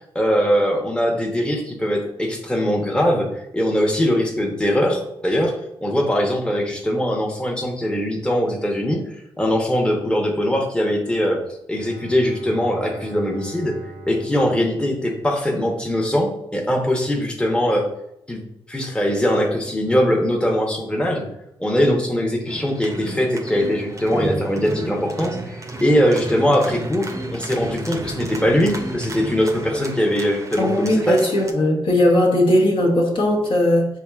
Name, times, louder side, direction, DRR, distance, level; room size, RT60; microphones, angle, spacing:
voice 1, 0.1-3.3 3.5-5.5 5.8-9.0 9.4-11.4 11.7-13.7 14.1-17.9 18.3-18.4 18.7-21.3 21.6-31.2, equal, 10° left, 0 dB, 0.8 m, -21 dB
Bowed string instrument, 11.7-15.7, right 2 dB, 85° right, 0.6 m, -41 dB
sound 1, 22.5-31.5, right 2 dB, 30° right, 0.6 m, -32 dB
voice 2, 30.6-33.9, left 1 dB, 55° left, -2 dB, 1.0 m, -18 dB
4.3 x 2.9 x 2.3 m, 0.80 s
supercardioid pair, 45°, 10 cm